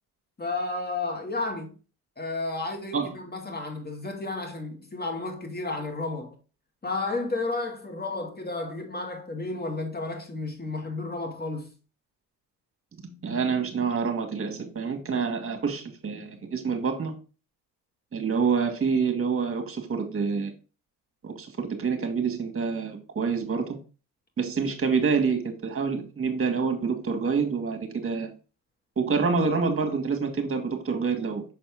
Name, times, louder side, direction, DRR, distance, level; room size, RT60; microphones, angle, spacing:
voice 1, 0.4-1.7 2.2-6.4 6.8-11.7, left 3 dB, 25° left, 2.0 m, -32 dB
voice 2, 13.0-17.2 18.1-20.5 21.2-23.8 24.4-28.3 29.0-31.4, right 5 dB, 35° right, 1.8 m, -27 dB
6.8 x 4.2 x 3.6 m
supercardioid pair, 75°, 38 cm